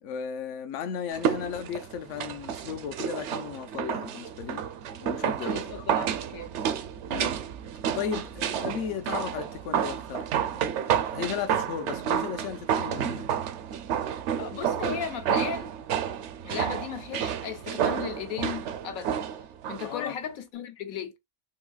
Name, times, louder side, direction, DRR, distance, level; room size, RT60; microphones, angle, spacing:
voice 1, 0.0-4.7 5.0-5.9 7.1-7.4 7.9-10.3 10.6-13.3 19.8-20.1, left 8 dB, 65° left, 1.0 m, -35 dB
sound 1, 1.1-19.9 20.2-20.3, right 9 dB, 65° right, 0.8 m, -30 dB
voice 2, 5.5-6.8 14.4-15.7 16.4-19.2 19.7-21.1, left 8 dB, 80° left, 1.2 m, -36 dB
3.9 x 2.7 x 2.3 m
omnidirectional pair, 1.5 m